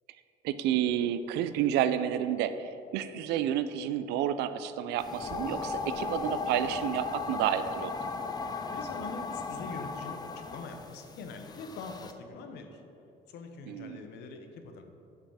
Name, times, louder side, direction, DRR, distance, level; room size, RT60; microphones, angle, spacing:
voice 1, 0.4-7.9 13.7-14.0, right 10 dB, 85° right, 12 dB, 0.4 m, -30 dB
sound 1, 5.0-12.1, left 4 dB, 25° left, 0.4 m, -37 dB
voice 2, 8.7-12.7 13.3-14.8, left 4 dB, 80° left, 5 dB, 0.8 m, -43 dB
6.0 x 5.4 x 4.8 m, 2.8 s
cardioid pair, 110°, 17 cm